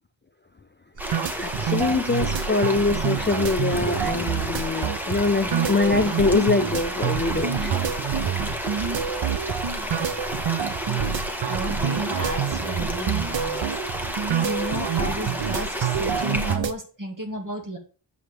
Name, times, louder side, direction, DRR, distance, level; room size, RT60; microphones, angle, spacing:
sound 1, 1.0-16.6, equal, 5° right, 1.2 m, -31 dB
sound 2, 1.0-16.7, right 8 dB, 80° right, 0.6 m, -27 dB
voice 1, 1.4-7.7, left 3 dB, 25° left, 0.4 m, -23 dB
voice 2, 11.5-14.1 14.4-17.8, right 1 dB, 45° right, 1.9 m, -33 dB
7.8 x 6.4 x 3.3 m
wide cardioid pair, 60°, 45 cm